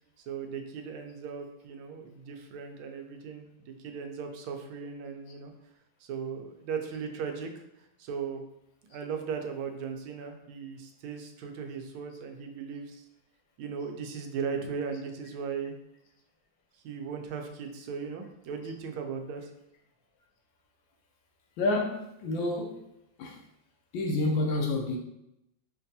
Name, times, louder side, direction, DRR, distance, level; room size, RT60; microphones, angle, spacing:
voice 1, 0.3-5.5 6.0-7.6 8.0-8.4 8.9-13.0 13.6-15.7 16.8-19.5, right 6 dB, 85° right, 4 dB, 1.4 m, -37 dB
voice 2, 21.6-22.8 23.2-23.4 23.9-25.0, left 2 dB, 75° left, 1 dB, 1.3 m, -29 dB
5.2 x 2.3 x 2.7 m, 0.84 s
omnidirectional pair, 2.2 m